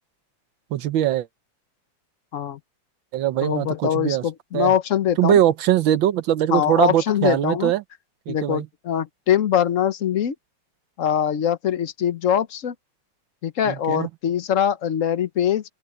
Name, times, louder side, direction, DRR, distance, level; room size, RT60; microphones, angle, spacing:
voice 1, 0.7-1.3 3.1-4.2 4.5-4.7 5.2-7.8 8.3-8.7 13.6-14.1, right 12 dB, 80° right, 1.6 m, -21 dB
voice 2, 3.4-5.4 6.5-7.7 8.3-10.3 11.0-12.7 13.4-15.6, left 9 dB, 50° left, 1.1 m, -22 dB
open air
omnidirectional pair, 2.1 m